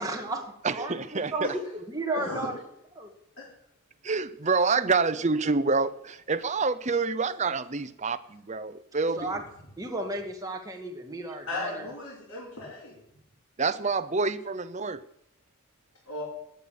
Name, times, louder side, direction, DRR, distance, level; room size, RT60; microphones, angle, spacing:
voice 1, 0.0-2.6 2.9-3.1 9.2-9.4 9.8-11.9, right 2 dB, 15° right, 1 dB, 2.1 m, -34 dB
voice 2, 0.6-1.5 4.0-9.3 13.6-15.0, right 4 dB, 30° right, 10 dB, 0.7 m, -27 dB
voice 3, 2.1-2.5 3.4-3.5 11.5-12.9 16.1-16.2, left 2 dB, 85° left, -7 dB, 6.0 m, -35 dB
18.0 x 7.1 x 9.4 m, 0.77 s
head